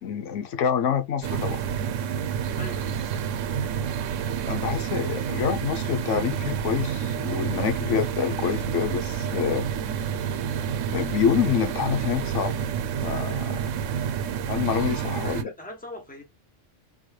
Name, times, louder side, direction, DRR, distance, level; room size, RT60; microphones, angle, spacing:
voice 1, 0.0-1.6 4.5-9.6 10.9-12.7 13.0-13.6 14.5-15.5, left 8 dB, 80° left, 1.0 m, -27 dB
sound 1, 1.2-15.4, right 8 dB, 90° right, 0.9 m, -29 dB
voice 2, 2.5-3.0 15.1-16.2, left 1 dB, 5° left, 1.1 m, -41 dB
3.8 x 3.1 x 2.3 m
omnidirectional pair, 1.3 m